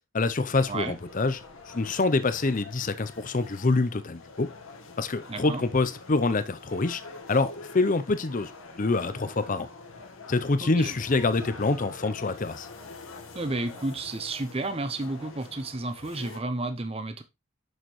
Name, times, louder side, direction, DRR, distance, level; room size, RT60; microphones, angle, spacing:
voice 1, 0.1-4.5 5.0-7.0 7.3-8.5 8.8-9.7 10.3-12.7, left 3 dB, 35° left, 0.6 m, -26 dB
sound 1, 0.5-16.4, left 3 dB, 65° left, 1.3 m, -46 dB
voice 2, 5.3-5.6 10.6-11.0 13.3-17.2, right 2 dB, 25° right, 0.7 m, -32 dB
6.5 x 6.5 x 3.1 m
head